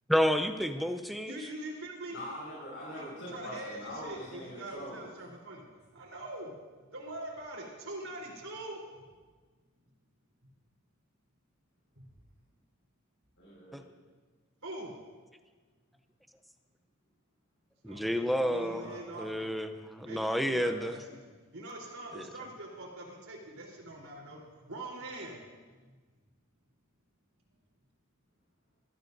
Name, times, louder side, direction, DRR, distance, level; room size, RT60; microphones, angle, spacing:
voice 1, 0.1-1.5 13.7-13.8 17.8-21.0 22.1-22.3, equal, ahead, 7 dB, 0.6 m, -30 dB
voice 2, 1.3-2.2 2.9-5.7 5.9-6.5 6.9-8.8 12.0-12.1 14.6-15.0 17.9-19.5 20.0-25.6, right 1 dB, 90° right, -2 dB, 3.7 m, -43 dB
voice 3, 2.1-5.1 13.4-13.9 18.5-19.0, equal, 65° left, -8 dB, 5.3 m, -43 dB
21.0 x 13.5 x 2.7 m, 1.4 s
head